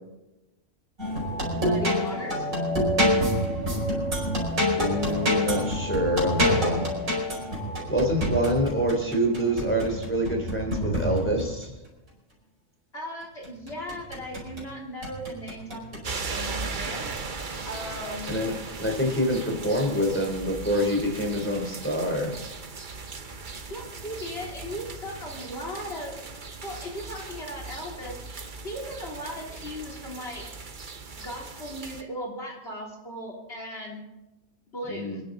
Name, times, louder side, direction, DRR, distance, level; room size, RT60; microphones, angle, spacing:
sound 1, 1.0-11.6 13.4-14.7 15.0-16.0 16.6-16.9, equal, 80° right, 5.3 m, -27 dB
voice 1, 1.5-2.5 12.9-17.1 17.7-18.3 23.7-26.1 26.6-28.2 28.6-30.5 31.2-34.0 34.7-35.2, equal, 45° left, -2 dB, 3.7 m, -37 dB
voice 2, 4.7-6.9 7.9-11.7 18.3-18.5 18.8-22.3 34.9-35.2, equal, 10° left, 0 dB, 3.2 m, -26 dB
sound 2, 16.0-32.0, right 4 dB, 40° right, 1.1 m, -38 dB
26.5 x 10.5 x 3.9 m, 1.0 s
omnidirectional pair, 1.4 m